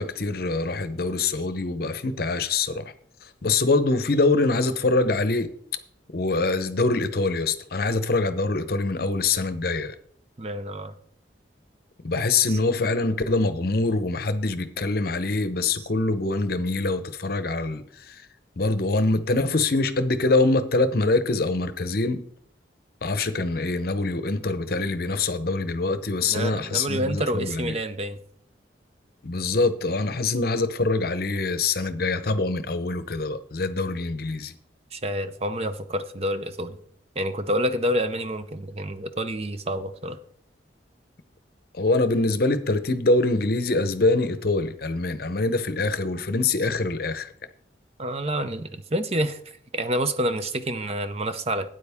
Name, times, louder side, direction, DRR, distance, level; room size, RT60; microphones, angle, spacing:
voice 1, 0.0-2.9 3.2-5.5 6.1-9.9 12.0-18.3 18.6-22.2 23.0-27.7 29.2-34.5 41.7-47.3, left 3 dB, 55° left, 0.8 m, -24 dB
voice 2, 10.4-10.9 12.5-12.6 26.3-28.2 34.9-36.8 37.2-40.2 48.0-49.4 49.7-51.7, right 1 dB, 35° right, 0.6 m, -28 dB
12.5 x 9.2 x 3.6 m
head